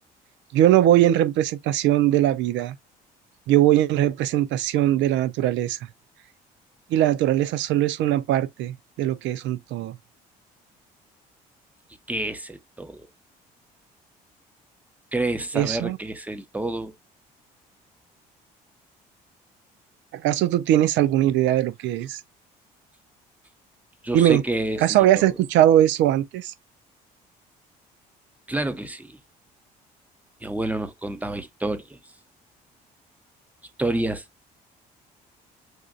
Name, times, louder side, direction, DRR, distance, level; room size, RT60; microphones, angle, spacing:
voice 1, 0.5-2.8 3.5-5.8 6.9-10.0 15.5-16.0 20.1-22.2 24.1-24.4 24.8-26.5, right 12 dB, 70° right, 0.6 m, -20 dB
voice 2, 12.1-13.1 15.1-16.9 24.0-25.3 28.5-29.2 30.4-32.0 33.8-34.2, right 1 dB, 10° right, 0.9 m, -29 dB
6.3 x 2.5 x 2.4 m
hypercardioid pair, 60°, 20 cm